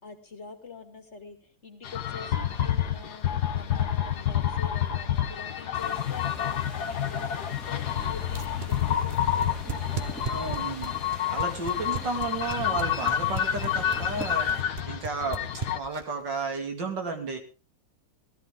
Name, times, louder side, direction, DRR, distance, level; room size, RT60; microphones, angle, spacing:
voice 1, 0.0-3.3 3.5-10.4, left 4 dB, 40° left, 6 dB, 2.2 m, -45 dB
sound 1, 1.8-15.8, left 10 dB, 65° left, 1.7 m, -29 dB
sound 2, 5.7-14.6, right 1 dB, ahead, 2.2 m, -45 dB
sound 3, 8.3-16.2, right 5 dB, 30° right, 1.1 m, -35 dB
voice 2, 10.2-14.5 14.9-15.4 15.7-17.4, right 3 dB, 75° right, 4 dB, 3.5 m, -33 dB
18.0 x 14.0 x 3.7 m, 0.34 s
omnidirectional pair, 1.9 m